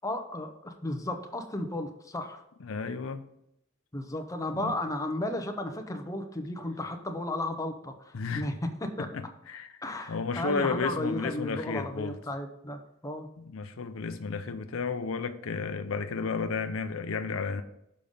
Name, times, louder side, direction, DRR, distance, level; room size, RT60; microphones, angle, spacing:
voice 1, 0.0-2.4 3.9-8.5 8.8-9.1 9.8-13.3 15.5-15.7, left 1 dB, 15° left, 0.8 m, -34 dB
voice 2, 2.6-3.3 4.5-4.7 8.1-8.5 9.0-9.8 10.1-12.2 13.4-17.6, left 5 dB, 70° left, 0.5 m, -33 dB
6.8 x 5.2 x 5.4 m
head